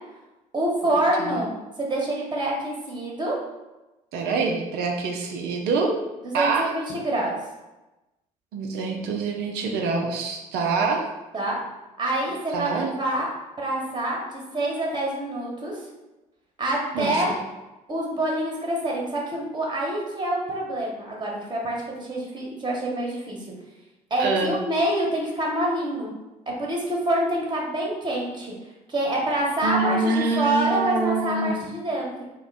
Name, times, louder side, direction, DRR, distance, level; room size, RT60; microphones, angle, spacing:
voice 1, 0.5-1.5 1.8-3.3 6.2-7.3 11.3-11.6 12.0-13.3 13.6-15.8 16.6-17.3 17.9-23.4 24.1-26.1 26.6-28.5 28.9-32.3, right 1 dB, 25° right, -2 dB, 1.1 m, -26 dB
voice 2, 4.1-5.9 6.3-6.7 8.5-11.0 12.5-12.9 16.9-17.4 24.2-24.5 29.6-31.6, right 3 dB, 65° right, 1 dB, 0.5 m, -25 dB
2.5 x 2.1 x 3.9 m, 1.0 s
hypercardioid pair, 50°, 18 cm